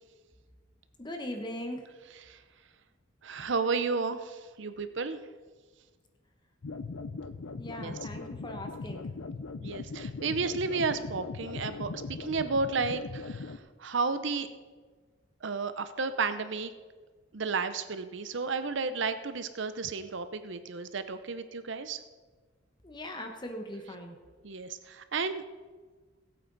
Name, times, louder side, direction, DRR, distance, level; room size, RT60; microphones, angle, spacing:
voice 1, 1.0-1.8 7.6-9.1 22.8-24.2, left 1 dB, 20° left, 4 dB, 1.1 m, -39 dB
voice 2, 3.2-5.2 7.8-7.9 9.6-14.5 15.4-16.7 17.3-22.0 24.4-25.4, right 4 dB, 60° right, 11 dB, 0.7 m, -32 dB
sound 1, 6.6-13.6, left 3 dB, 75° left, 0.6 m, -39 dB
19.5 x 8.5 x 4.0 m, 1.4 s
head